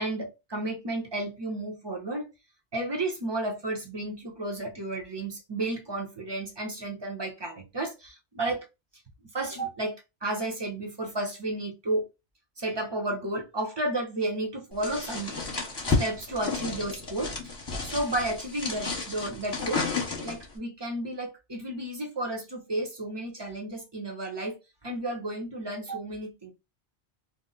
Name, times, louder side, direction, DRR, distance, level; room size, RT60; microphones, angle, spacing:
voice 1, 0.0-2.3 2.7-8.6 9.3-12.1 12.6-15.4 15.9-17.3 17.8-19.9 20.2-24.6 24.8-26.5, right 2 dB, 30° right, 0.6 m, -32 dB
sound 1, 14.8-20.5, left 4 dB, 25° left, 0.9 m, -32 dB
2.5 x 2.0 x 3.8 m
omnidirectional pair, 1.1 m